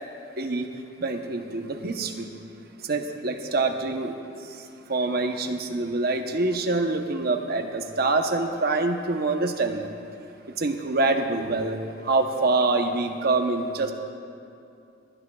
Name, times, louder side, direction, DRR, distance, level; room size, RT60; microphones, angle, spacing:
voice 1, 0.4-0.7 1.0-2.3 2.9-4.1 4.9-9.9 10.6-11.8 12.0-13.9, right 3 dB, 55° right, 4 dB, 0.9 m, -25 dB
28.5 x 11.0 x 2.3 m, 2.6 s
head